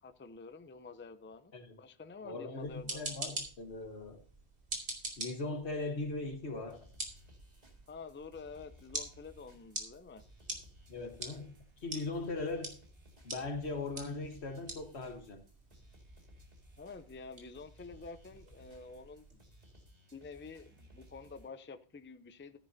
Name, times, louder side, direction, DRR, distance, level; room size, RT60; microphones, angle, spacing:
voice 1, 0.0-1.5 1.8-3.2 7.9-10.2 16.8-19.3 20.1-22.6, left 4 dB, 15° left, 0.5 m, -49 dB
voice 2, 2.2-4.2 5.2-6.8 10.9-11.5 11.8-12.8 13.2-15.4, left 3 dB, 80° left, 1.7 m, -39 dB
sound 1, 2.6-19.4, right 2 dB, 75° right, 2.8 m, -46 dB
sound 2, 6.7-21.5, equal, 40° right, 2.4 m, -60 dB
14.5 x 10.0 x 2.7 m
omnidirectional pair, 1.1 m